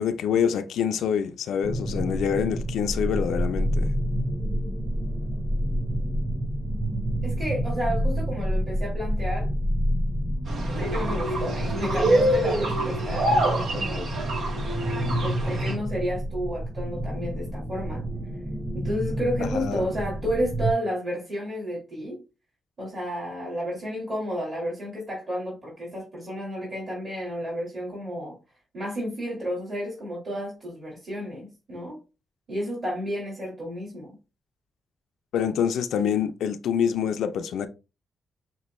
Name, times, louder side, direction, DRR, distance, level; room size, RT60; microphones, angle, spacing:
voice 1, 0.0-3.9 19.4-19.9 35.3-37.7, left 8 dB, 90° left, 0.4 m, -26 dB
sound 1, 1.6-20.7, equal, 5° right, 0.8 m, -29 dB
voice 2, 7.2-9.5 10.8-14.1 15.2-18.0 18.7-22.2 22.8-28.4 28.7-32.0 32.5-34.2, equal, 35° right, 2.2 m, -31 dB
sound 2, 10.5-15.7, right 1 dB, 75° right, 1.0 m, -26 dB
6.0 x 2.2 x 3.1 m
cardioid pair, 110°, 0 cm